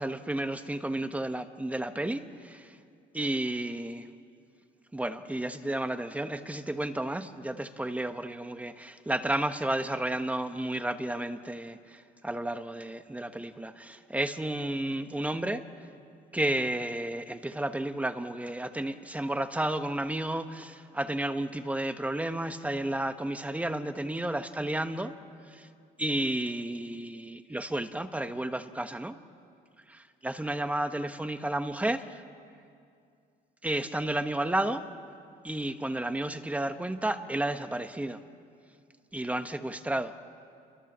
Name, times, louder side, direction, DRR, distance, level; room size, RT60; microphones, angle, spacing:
voice 1, 0.0-2.8 3.1-4.1 4.9-8.7 9.1-15.6 16.3-25.1 25.5-25.7 26.0-29.1 29.9-32.2 33.6-34.8 35.4-38.2 39.1-40.1, right 1 dB, 10° right, 8 dB, 1.2 m, -32 dB
29.0 x 23.0 x 7.5 m, 2.4 s
cardioid pair, 110°, 17 cm